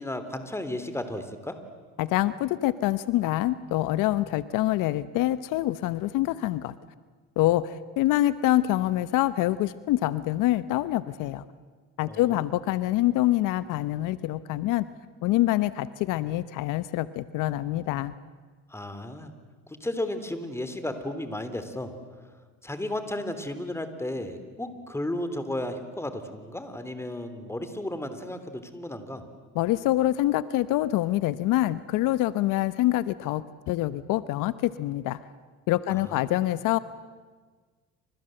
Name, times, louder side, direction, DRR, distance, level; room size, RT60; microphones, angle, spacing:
voice 1, 0.0-1.6 12.1-12.4 18.7-19.3 19.7-21.9 22.6-29.2 35.9-36.4, left 1 dB, 10° left, 10 dB, 3.4 m, -34 dB
voice 2, 2.0-6.7 7.4-11.4 12.0-14.9 15.2-18.1 29.5-35.2 35.7-36.8, left 15 dB, 75° left, 15 dB, 1.0 m, -25 dB
29.5 x 26.0 x 7.8 m, 1.5 s
supercardioid pair, 100°, 32 cm